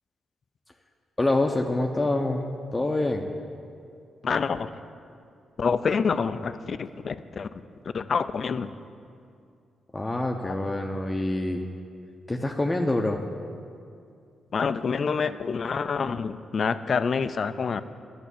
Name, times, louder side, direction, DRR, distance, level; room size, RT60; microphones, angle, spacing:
voice 1, 1.2-2.4 2.7-3.2 9.9-11.7 12.3-13.2, left 2 dB, 25° left, 2 dB, 0.8 m, -26 dB
voice 2, 4.2-4.7 5.6-7.5 7.9-8.7 10.4-10.5 14.5-17.8, left 5 dB, 55° left, 12 dB, 0.4 m, -27 dB
11.0 x 6.0 x 8.4 m, 2.4 s
supercardioid pair, 50°, 0 cm